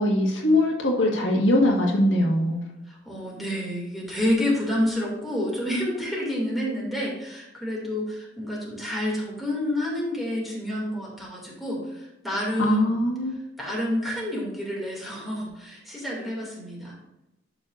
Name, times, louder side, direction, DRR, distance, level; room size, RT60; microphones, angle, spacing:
voice 1, 0.0-2.7 12.6-13.4, left 1 dB, 80° left, -1 dB, 1.8 m, -21 dB
voice 2, 2.9-12.9 13.6-16.9, left 1 dB, ahead, -5 dB, 2.7 m, -29 dB
11.0 x 6.1 x 2.7 m, 0.95 s
head